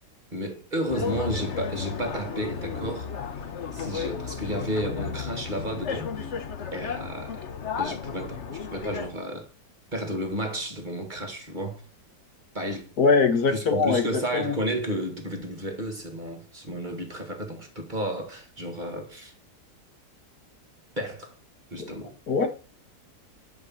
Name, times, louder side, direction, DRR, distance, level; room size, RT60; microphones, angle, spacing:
voice 1, 0.3-3.1 3.7-6.3 6.7-7.5 7.8-9.5 9.9-11.8 12.5-12.9 13.5-19.3 21.0-21.3 21.7-22.2, right 1 dB, 30° right, 1.9 m, -32 dB
sound 1, 0.9-9.1, left 6 dB, 50° left, 1.3 m, -33 dB
voice 2, 13.0-14.0 14.3-14.5 21.8-21.9 22.3-22.5, left 4 dB, 70° left, 2.1 m, -21 dB
11.0 x 5.2 x 7.3 m
omnidirectional pair, 1.7 m